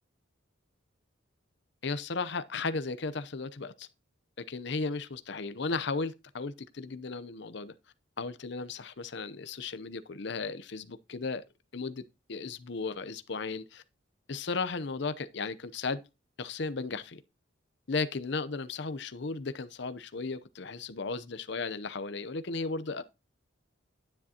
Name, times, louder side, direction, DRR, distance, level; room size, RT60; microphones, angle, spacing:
voice 1, 1.8-3.9 4.5-7.7 8.2-11.4 11.7-12.0 12.3-13.8 14.3-16.0 16.4-17.2 17.9-23.0, left 4 dB, 60° left, 0.7 m, -35 dB
10.0 x 9.6 x 2.8 m
head